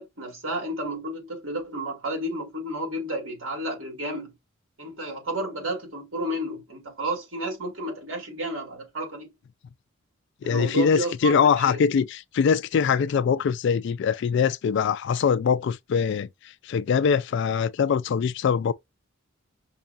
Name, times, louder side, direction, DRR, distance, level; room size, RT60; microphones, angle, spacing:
voice 1, 0.0-4.3 4.8-9.3 10.4-11.8, right 1 dB, 75° right, 2.2 m, -32 dB
voice 2, 10.4-16.3 16.6-18.7, left 6 dB, 60° left, 0.3 m, -23 dB
5.4 x 2.3 x 2.5 m
head